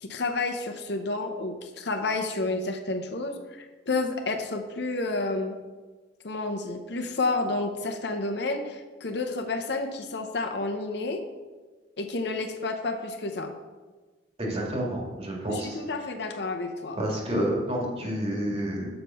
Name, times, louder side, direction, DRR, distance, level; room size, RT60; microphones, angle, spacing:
voice 1, 0.0-5.6 6.2-11.3 12.0-13.5 15.5-17.0, left 3 dB, 65° left, 5 dB, 0.9 m, -30 dB
voice 2, 14.4-15.8 17.0-18.9, right 1 dB, 35° right, -1 dB, 2.1 m, -29 dB
7.5 x 6.7 x 5.6 m, 1.3 s
head